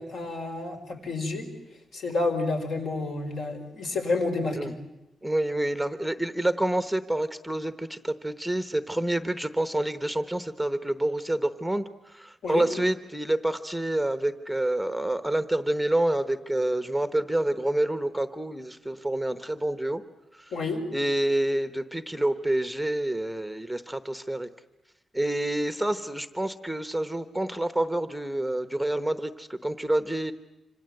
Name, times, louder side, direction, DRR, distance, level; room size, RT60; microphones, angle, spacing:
voice 1, 0.0-1.5 1.9-4.7 12.4-12.6 20.5-20.8, left 3 dB, 65° left, 4 dB, 5.1 m, -29 dB
voice 2, 5.2-20.0 20.3-20.5 20.9-24.5 25.1-30.3, right 1 dB, ahead, 10 dB, 0.9 m, -28 dB
27.0 x 26.0 x 7.8 m, 0.96 s
wide cardioid pair, 165°, 0 cm